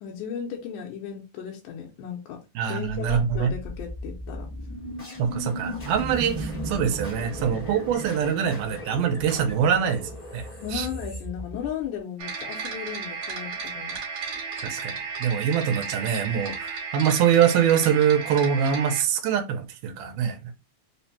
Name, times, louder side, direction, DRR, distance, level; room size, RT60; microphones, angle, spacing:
voice 1, 0.0-2.4 2.7-4.5 10.6-14.0, left 8 dB, 80° left, 2.1 m, -35 dB
voice 2, 2.6-3.5 5.2-10.5 10.7-10.9 14.6-14.9 15.2-20.4, right 8 dB, 90° right, 2.2 m, -24 dB
sound 1, 3.3-12.0, equal, 60° left, 0.4 m, -36 dB
sound 2, 12.2-19.0, right 5 dB, 65° right, 2.3 m, -34 dB
5.2 x 2.1 x 2.8 m
omnidirectional pair, 3.7 m